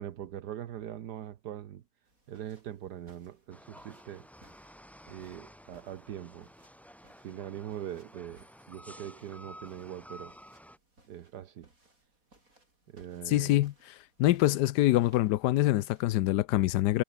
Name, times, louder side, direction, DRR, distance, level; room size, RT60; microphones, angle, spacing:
voice 1, 0.0-1.8 2.3-4.3 5.1-6.5 7.2-10.3 11.1-11.7 12.9-13.6, right 11 dB, 75° right, 1.5 m, -42 dB
sound 1, 2.0-16.3, right 2 dB, 55° right, 7.4 m, -63 dB
sound 2, 3.5-10.8, equal, ahead, 3.9 m, -52 dB
voice 2, 13.3-17.0, left 15 dB, 90° left, 1.2 m, -25 dB
omnidirectional pair, 1.8 m